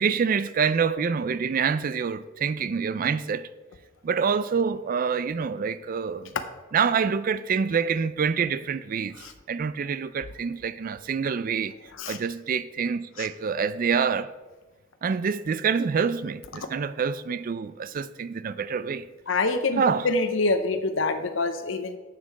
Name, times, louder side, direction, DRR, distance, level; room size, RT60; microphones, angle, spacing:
voice 1, 0.0-3.5 4.0-6.3 6.7-9.2 9.5-11.7 12.1-14.3 15.0-19.0 19.8-20.1, right 6 dB, 45° right, 0.4 m, -26 dB
voice 2, 19.3-22.0, left 3 dB, 75° left, 0.8 m, -26 dB
10.0 x 7.5 x 4.7 m
head